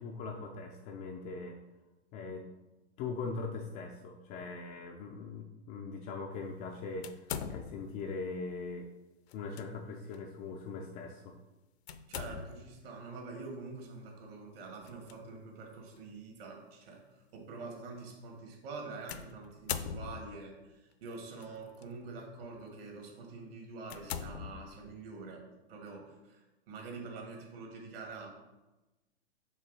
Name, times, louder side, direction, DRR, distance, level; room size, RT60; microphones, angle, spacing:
voice 1, 0.0-1.6 2.1-2.5 3.0-8.9 9.3-11.3, left 4 dB, 20° left, 2 dB, 0.3 m, -41 dB
sound 1, 7.0-8.0 9.3-9.6 10.1-10.2 11.9-12.8 14.8-15.1 16.0-16.1 19.1-20.5 21.4-21.8 22.4-22.6 23.1-23.2 23.8-25.1, left 8 dB, 70° left, 0.6 m, -41 dB
voice 2, 12.1-17.0 17.3-25.4 25.7-28.3, right 3 dB, 55° right, 1 dB, 2.0 m, -46 dB
5.5 x 3.6 x 5.2 m, 1.1 s
hypercardioid pair, 120°, 34 cm